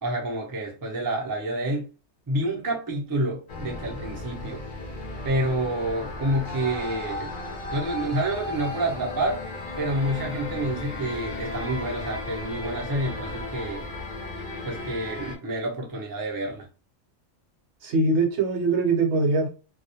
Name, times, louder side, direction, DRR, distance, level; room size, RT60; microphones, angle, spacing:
voice 1, 0.0-1.9 2.3-4.7 5.2-7.3 7.7-9.4 9.8-13.9 14.6-16.7, right 1 dB, 35° right, 0.3 m, -28 dB
sound 1, 3.5-15.4, left 2 dB, 50° left, 0.7 m, -35 dB
voice 2, 17.8-19.5, right 3 dB, 65° right, 0.9 m, -22 dB
2.3 x 2.1 x 2.8 m
omnidirectional pair, 1.3 m